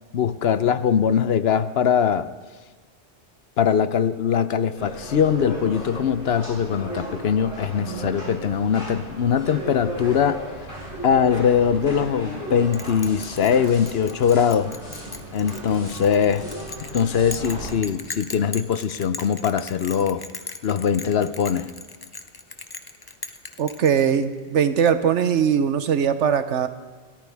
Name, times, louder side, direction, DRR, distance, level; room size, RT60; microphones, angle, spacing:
voice 1, 0.1-2.3 3.6-10.4 11.0-14.7 15.3-16.5 16.9-20.3 20.6-21.7, left 7 dB, 65° left, 13 dB, 0.9 m, -21 dB
sound 1, 4.7-17.7, right 1 dB, 50° left, 5.6 m, -35 dB
Bell, 12.7-24.4, left 3 dB, 25° left, 0.6 m, -38 dB
voice 2, 23.6-26.7, right 7 dB, 85° right, 11 dB, 1.2 m, -20 dB
29.0 x 13.5 x 3.5 m, 1.4 s
omnidirectional pair, 1.2 m